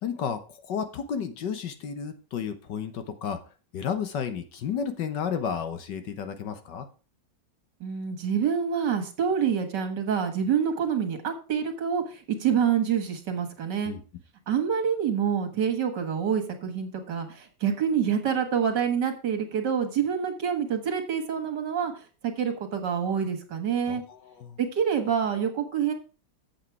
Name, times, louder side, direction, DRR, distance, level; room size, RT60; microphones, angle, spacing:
voice 1, 0.0-3.4 3.7-6.9 13.9-14.0 23.9-24.6, left 7 dB, 70° left, 9 dB, 1.7 m, -32 dB
voice 2, 7.8-13.9 14.5-21.9 22.2-24.0 24.6-25.9, right 7 dB, 65° right, 6 dB, 2.2 m, -27 dB
7.9 x 7.5 x 4.7 m, 0.35 s
omnidirectional pair, 2.0 m